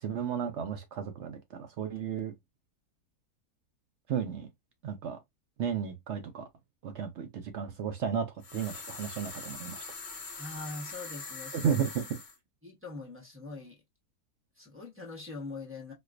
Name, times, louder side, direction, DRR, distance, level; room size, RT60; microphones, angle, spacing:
voice 1, 0.0-2.3 4.1-4.5 4.8-5.2 5.6-6.5 6.8-9.9 11.5-12.2, right 7 dB, 65° right, 0.7 m, -33 dB
sound 1, 8.4-12.4, left 4 dB, 45° left, 1.2 m, -43 dB
voice 2, 10.4-11.7 12.6-13.8 14.6-15.9, left 3 dB, 10° right, 0.6 m, -42 dB
4.3 x 2.3 x 2.4 m
omnidirectional pair, 1.7 m